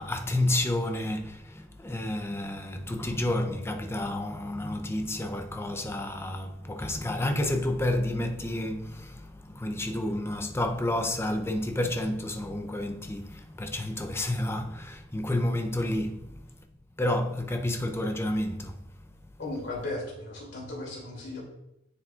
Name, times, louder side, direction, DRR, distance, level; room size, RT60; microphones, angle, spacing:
voice 1, 0.0-16.4 17.0-18.8, left 1 dB, 10° left, 0.6 m, -30 dB
voice 2, 19.4-21.4, left 2 dB, 60° left, 2.6 m, -36 dB
9.6 x 7.0 x 2.4 m
head